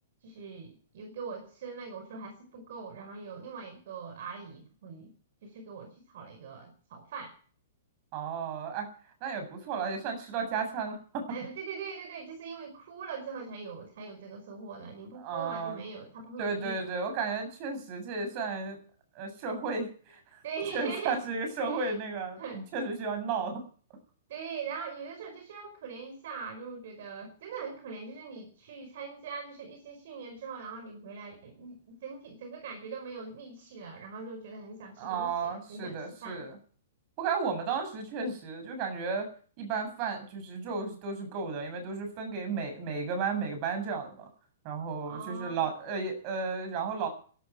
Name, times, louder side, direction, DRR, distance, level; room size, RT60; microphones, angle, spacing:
voice 1, 0.2-5.1 5.4-7.3 11.3-16.8 20.4-21.2 21.7-21.9 22.4-22.6 24.3-36.4 45.0-45.5, right 5 dB, 55° right, 6 dB, 5.1 m, -42 dB
voice 2, 8.1-8.9 9.2-11.2 15.2-15.8 16.4-18.8 19.2-20.2 20.7-23.6 35.0-36.6 37.2-39.3 39.6-44.3 44.6-47.1, right 5 dB, 35° right, 6 dB, 7.4 m, -33 dB
16.5 x 13.0 x 6.3 m, 0.42 s
hypercardioid pair, 160°, 0 cm